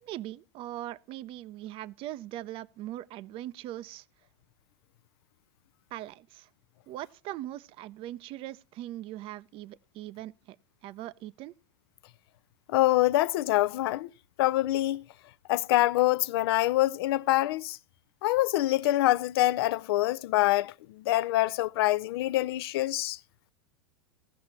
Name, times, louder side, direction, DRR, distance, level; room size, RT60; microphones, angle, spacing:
voice 1, 0.0-4.1 5.9-6.5 6.9-10.6 10.8-11.5, right 14 dB, 40° right, 0.5 m, -40 dB
voice 2, 12.7-14.1 14.4-15.0 15.5-17.8 18.2-23.2, left 16 dB, 65° left, 0.4 m, -25 dB
16.5 x 5.9 x 4.1 m
hypercardioid pair, 105°, 14 cm